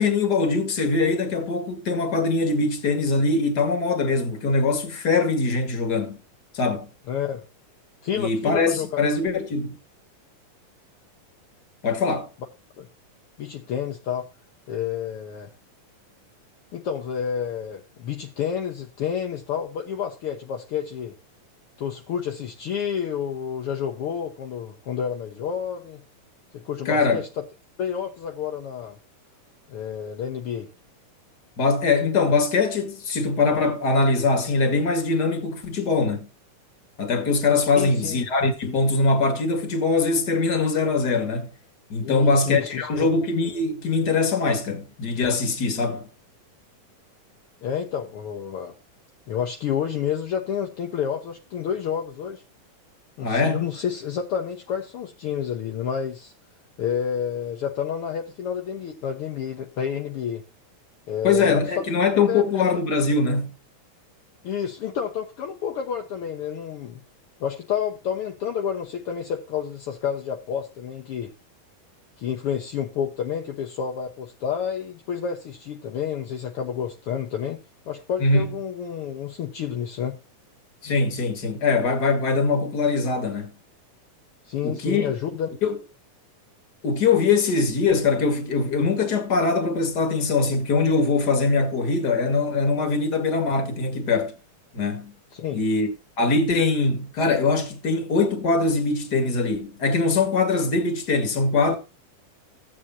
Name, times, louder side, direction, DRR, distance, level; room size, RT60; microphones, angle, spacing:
voice 1, 0.0-6.2 6.5-6.9 8.2-9.8 11.8-12.3 26.9-27.2 31.6-36.3 37.0-41.5 41.9-46.1 53.2-53.6 61.2-63.5 78.2-78.4 80.8-83.5 84.6-85.1 85.6-85.8 86.8-94.3 94.7-95.1 95.5-95.9 96.2-101.7, left 3 dB, 35° left, 2.1 m, -22 dB
voice 2, 7.1-7.4 8.0-9.0 12.8-12.9 13.4-14.3 14.7-15.5 16.7-21.2 21.8-26.0 26.5-27.4 27.8-29.0 29.7-30.7 37.8-38.2 42.0-42.9 47.6-48.7 49.3-52.4 53.2-56.3 56.8-60.4 61.1-61.8 62.3-62.6 64.4-67.0 67.4-71.3 72.2-77.6 77.9-80.2 84.4-85.5 95.3-95.6, left 8 dB, 60° left, 1.5 m, -29 dB
15.5 x 8.4 x 2.7 m
omnidirectional pair, 3.9 m